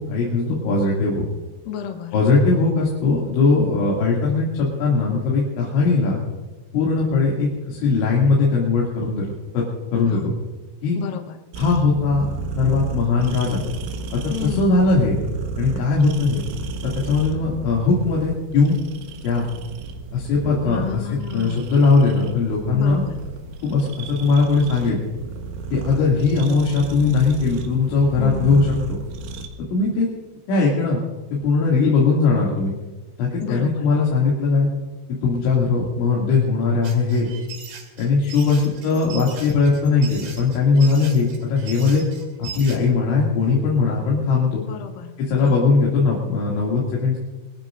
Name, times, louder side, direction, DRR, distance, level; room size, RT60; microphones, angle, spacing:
voice 1, 0.1-1.3 2.1-6.2 6.7-9.6 9.9-10.2 10.8-11.0 11.6-12.2 12.6-13.6 14.1-15.2 15.6-16.4 16.8-18.8 19.2-19.5 20.1-23.0 23.6-25.0 25.7-28.7 29.7-30.1 30.5-31.0 31.3-32.7 33.2-34.7 35.2-37.3 38.0-42.0 42.4-44.6 45.3-47.2, left 4 dB, 85° left, -4 dB, 5.1 m, -19 dB
voice 2, 1.7-2.1 10.0-10.3 10.9-11.4 14.3-14.7 20.7-21.6 22.7-23.2 28.2-28.7 33.4-33.9 44.6-45.6, left 8 dB, 70° left, 5 dB, 2.2 m, -31 dB
sound 1, 11.5-29.5, right 4 dB, 85° right, 3.8 m, -33 dB
sound 2, 36.8-42.8, right 6 dB, 65° right, 4.5 m, -39 dB
25.0 x 20.0 x 2.6 m, 1.2 s
omnidirectional pair, 5.2 m